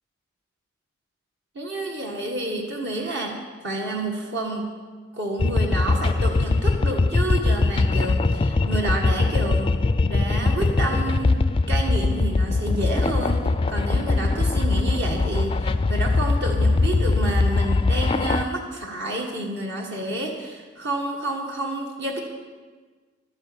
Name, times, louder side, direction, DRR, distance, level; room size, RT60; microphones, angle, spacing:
voice 1, 1.5-3.4 3.6-4.7 5.1-9.7 10.1-11.4 11.7-22.2, right 1 dB, 55° right, 0 dB, 1.6 m, -29 dB
sound 1, 5.4-18.4, left 3 dB, 25° left, 0.3 m, -21 dB
12.5 x 10.0 x 7.1 m, 1.5 s
head